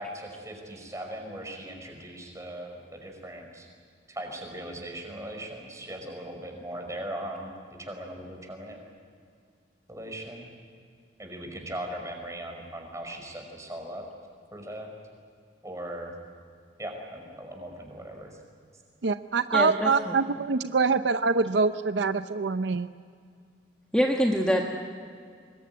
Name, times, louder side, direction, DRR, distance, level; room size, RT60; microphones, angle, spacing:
voice 1, 0.0-3.7 4.1-7.5 7.8-8.8 9.9-10.5 11.2-14.0 14.5-14.9 15.6-16.1 16.8-18.3 23.0-23.1, right 1 dB, 15° right, 2 dB, 5.4 m, -39 dB
voice 2, 19.0-22.9, right 4 dB, 65° right, 10 dB, 0.6 m, -25 dB
voice 3, 19.5-20.1 23.9-24.8, equal, 5° left, 0 dB, 1.5 m, -25 dB
25.0 x 21.0 x 9.5 m, 2.2 s
head